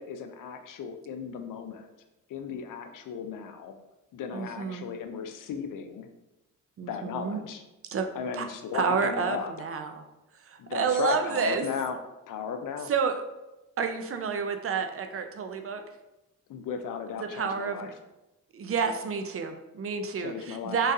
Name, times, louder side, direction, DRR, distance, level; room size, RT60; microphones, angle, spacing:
voice 1, 0.0-1.9 2.3-3.7 4.1-6.1 6.8-7.6 8.1-9.5 10.6-12.0 12.3-12.9 16.5-17.9 20.2-20.8, left 6 dB, 65° left, 7 dB, 0.6 m, -35 dB
voice 2, 4.3-4.8 6.8-7.4 7.9-8.1 8.3-8.5 8.7-10.0 10.4-11.7 12.9-13.2 13.8-15.8 17.2-17.9 18.5-20.9, right 6 dB, 40° right, 7 dB, 0.5 m, -29 dB
3.9 x 3.8 x 2.6 m, 0.98 s
cardioid pair, 85°, 34 cm